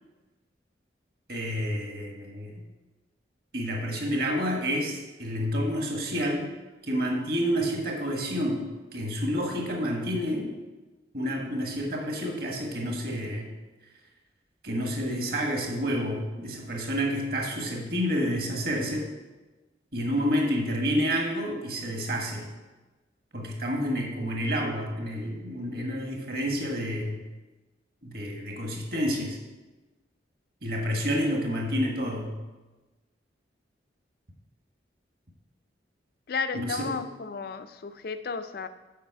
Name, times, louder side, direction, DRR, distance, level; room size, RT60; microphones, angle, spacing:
voice 1, 1.3-2.6 3.5-6.5 6.8-8.6 8.9-10.5 11.1-13.5 14.6-19.1 19.9-22.5 23.3-27.2 28.0-29.4 30.6-32.4 36.5-36.9, equal, 55° right, 1 dB, 1.4 m, -29 dB
voice 2, 36.3-38.7, left 5 dB, 55° left, 11 dB, 0.4 m, -33 dB
7.3 x 6.1 x 4.6 m, 1.1 s
head